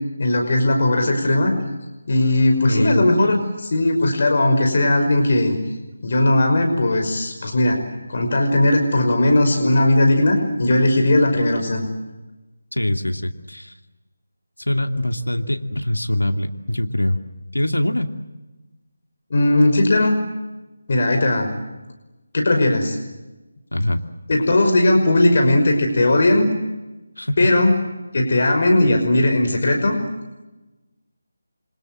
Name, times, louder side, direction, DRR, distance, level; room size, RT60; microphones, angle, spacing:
voice 1, 0.2-1.5 2.1-5.6 6.0-7.8 8.1-11.9 19.3-20.2 20.9-21.5 22.3-23.0 24.3-26.5 27.4-27.7 28.1-29.9, left 1 dB, 50° left, 4 dB, 5.6 m, -17 dB
voice 2, 2.6-3.0 12.7-13.7 14.6-17.2 17.5-18.1 23.7-24.0 27.2-27.4, left 1 dB, 85° left, 6 dB, 2.4 m, -23 dB
29.0 x 25.5 x 7.8 m, 1.1 s
figure-of-eight pair, 160°, 0 cm